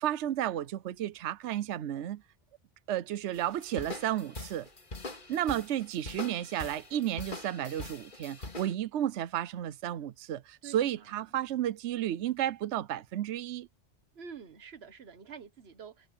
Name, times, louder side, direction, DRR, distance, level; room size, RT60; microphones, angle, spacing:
voice 1, 0.0-2.2 2.9-4.7 5.3-13.7, right 11 dB, 80° right, 0.9 m, -32 dB
sound 1, 3.3-8.7, left 3 dB, 45° left, 2.4 m, -43 dB
voice 2, 10.6-11.2 14.1-16.1, right 6 dB, 60° right, 1.4 m, -48 dB
omnidirectional pair, 1.2 m